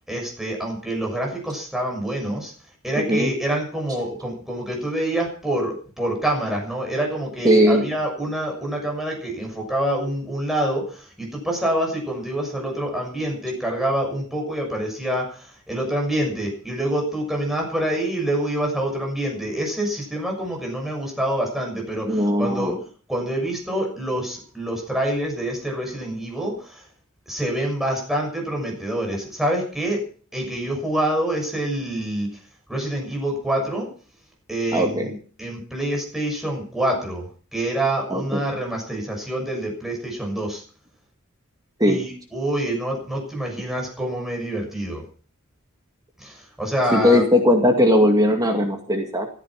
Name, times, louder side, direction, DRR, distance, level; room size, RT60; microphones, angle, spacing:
voice 1, 0.1-2.5 2.8-22.7 23.1-26.9 27.3-30.0 30.3-32.3 32.7-33.9 34.5-40.6 41.9-45.0 46.2-47.2, right 1 dB, ahead, 0 dB, 6.6 m, -26 dB
voice 2, 2.9-3.3 7.4-7.9 22.1-22.8 34.7-35.1 38.1-38.4 41.8-42.0 46.9-49.3, left 1 dB, 20° right, 3 dB, 2.2 m, -18 dB
15.5 x 14.0 x 6.0 m, 0.42 s
head